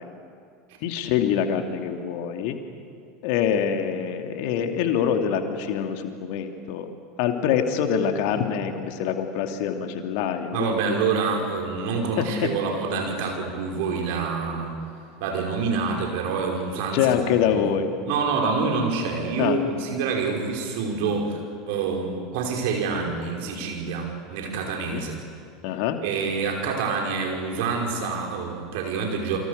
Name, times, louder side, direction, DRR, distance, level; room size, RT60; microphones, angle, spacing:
voice 1, 0.8-2.6 3.2-6.9 7.2-10.8 12.2-12.5 16.9-17.9 19.4-19.6 24.9-25.0 25.6-26.0, left 8 dB, 60° left, 5 dB, 2.6 m, -25 dB
voice 2, 10.5-14.7 15.2-17.1 17.5-17.6 18.1-21.4 21.7-25.2 26.0-29.4, right 4 dB, 60° right, 1 dB, 5.4 m, -27 dB
28.5 x 24.5 x 6.8 m, 2.4 s
figure-of-eight pair, 75°, 0 cm